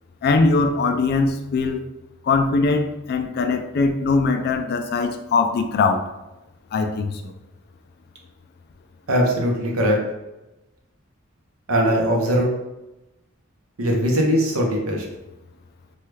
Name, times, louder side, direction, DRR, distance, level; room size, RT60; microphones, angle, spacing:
voice 1, 0.2-1.8 2.2-6.1 6.7-7.3, left 3 dB, 50° left, 6 dB, 0.3 m, -21 dB
voice 2, 9.1-10.0 11.7-12.5 13.8-15.0, equal, 80° right, 0 dB, 0.8 m, -20 dB
3.1 x 2.3 x 3.2 m, 0.99 s
head